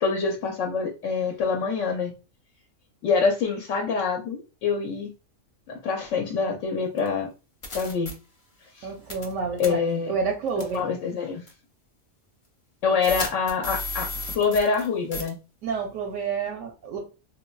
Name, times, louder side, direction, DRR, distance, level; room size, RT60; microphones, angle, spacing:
voice 1, 0.0-2.1 3.0-5.1 5.7-7.3 7.7-8.1 8.7-8.9 9.6-10.2 10.6-11.4 12.8-15.4, left 5 dB, 70° left, 2 dB, 0.9 m, -26 dB
sound 1, 7.0-7.1 7.6-8.1 9.1-9.3 9.6-9.7 10.6-10.8 11.5-11.6 13.0-14.9 15.1-15.3, left 2 dB, 50° left, 0.3 m, -33 dB
voice 2, 8.8-10.9 15.6-17.0, right 5 dB, 80° right, 2 dB, 1.0 m, -29 dB
3.1 x 2.1 x 2.2 m, 0.31 s
omnidirectional pair, 1.4 m